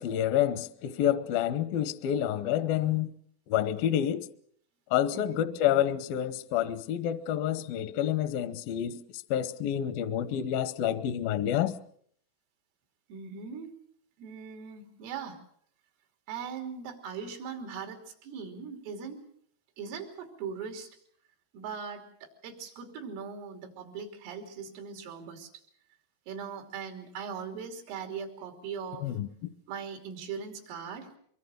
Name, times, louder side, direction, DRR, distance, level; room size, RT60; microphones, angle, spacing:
voice 1, 0.0-3.1 3.5-4.3 4.9-9.0 9.3-11.7 29.0-29.3, left 10 dB, 75° left, 2.2 m, -28 dB
voice 2, 5.1-5.4 13.1-13.7 14.2-15.4 16.3-19.2 19.8-20.9 21.5-25.5 26.3-29.1 29.7-31.1, right 6 dB, 90° right, 5.7 m, -40 dB
24.0 x 23.5 x 6.5 m
omnidirectional pair, 5.6 m